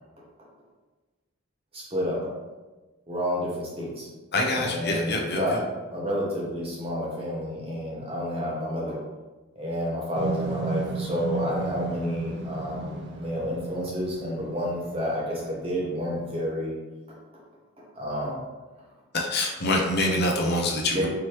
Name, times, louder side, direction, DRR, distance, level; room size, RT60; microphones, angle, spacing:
voice 1, 1.7-2.2 3.1-4.1 4.5-5.6 5.9-9.0 9.6-16.7 17.9-18.4 20.9-21.1, equal, 25° right, -4 dB, 1.0 m, -30 dB
voice 2, 4.3-5.6 19.1-21.1, left 1 dB, 50° left, 0 dB, 0.6 m, -25 dB
sound 1, 10.1-15.4, right 4 dB, 55° right, 0.5 m, -34 dB
4.8 x 3.0 x 3.0 m, 1.2 s
head